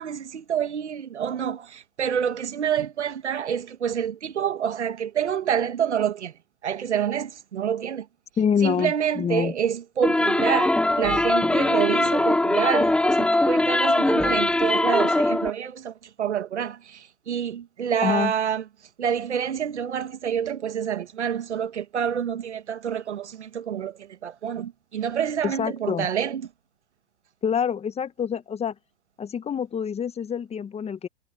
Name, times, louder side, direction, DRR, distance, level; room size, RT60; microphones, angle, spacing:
voice 1, 0.0-6.3 6.6-8.1 8.6-18.6 19.0-26.4, right 8 dB, 90° right, 2.0 m, -27 dB
voice 2, 8.4-9.5 18.0-18.3 25.4-26.1 27.4-28.7 29.2-31.1, left 7 dB, 20° left, 1.1 m, -26 dB
sound 1, 10.0-15.5, left 2 dB, 5° left, 0.6 m, -21 dB
hypercardioid pair, 115°, 33 cm